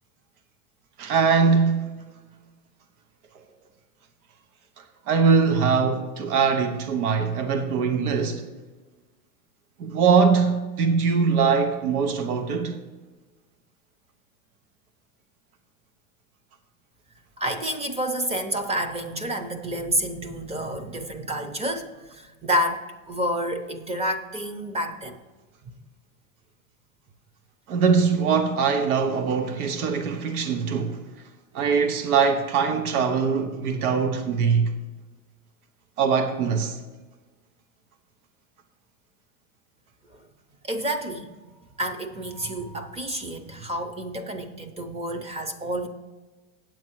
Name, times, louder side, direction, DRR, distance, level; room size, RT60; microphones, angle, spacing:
voice 1, 1.0-2.0 5.1-8.4 9.8-12.8 27.7-31.0 31.5-34.7 36.0-36.8, right 5 dB, 85° right, 1.1 m, -22 dB
voice 2, 17.4-25.2 40.1-40.2 40.6-41.3 41.8-45.9, right 1 dB, 15° right, 0.6 m, -29 dB
8.9 x 7.7 x 4.5 m
supercardioid pair, 135°, 43 cm